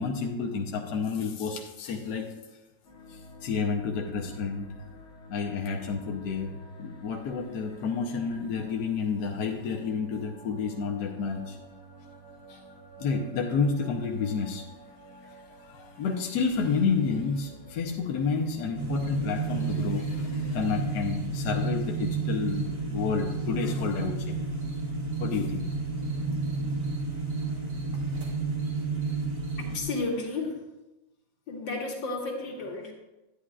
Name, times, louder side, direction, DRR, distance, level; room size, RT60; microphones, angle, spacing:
voice 1, 0.0-2.3 3.1-4.6 5.3-6.5 6.8-11.6 12.5-12.6 13.0-14.6 15.2-15.3 15.6-24.5 25.2-25.7, left 5 dB, 65° left, 1 dB, 1.3 m, -30 dB
sound 1, 2.8-20.5, equal, 40° left, 2.1 m, -49 dB
sound 2, 18.7-29.8, right 3 dB, 45° right, 1.8 m, -31 dB
voice 2, 29.6-30.6 31.5-32.9, left 3 dB, 85° left, 0 dB, 2.0 m, -32 dB
10.0 x 9.6 x 2.4 m, 1.0 s
omnidirectional pair, 2.0 m